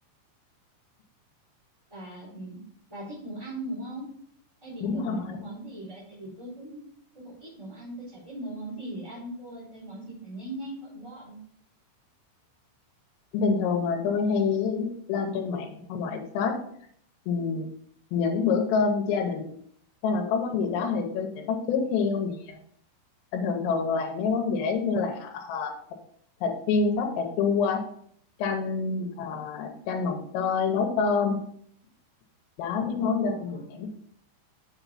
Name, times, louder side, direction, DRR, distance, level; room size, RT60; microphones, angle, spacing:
voice 1, 1.9-2.6 2.9-4.1 4.6-6.8 7.1-11.4 32.9-33.7, right 1 dB, 10° right, -11 dB, 2.3 m, -39 dB
voice 2, 4.8-5.4 13.3-16.6 17.3-17.7 18.1-19.4 20.0-22.6 23.3-25.8 26.4-27.8 28.4-31.4 32.6-33.9, left 5 dB, 90° left, 1 dB, 3.6 m, -27 dB
7.4 x 6.1 x 4.1 m, 0.64 s
omnidirectional pair, 5.7 m